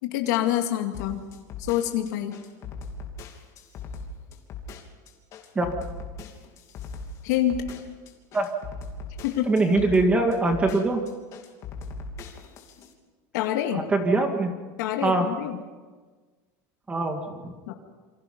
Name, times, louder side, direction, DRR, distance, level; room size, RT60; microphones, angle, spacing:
voice 1, 0.0-1.3 1.6-2.4 7.2-7.6 9.2-9.6 13.3-13.8 14.8-15.6 17.7-17.8, left 12 dB, 80° left, 4 dB, 2.3 m, -26 dB
sound 1, 0.9-12.9, left 4 dB, 35° left, 3.0 m, -39 dB
voice 2, 9.5-11.0 13.9-14.5 15.0-15.3 16.9-17.5, right 2 dB, 15° right, 4 dB, 2.0 m, -22 dB
28.5 x 25.0 x 5.4 m, 1.4 s
cardioid pair, 165°, 9 cm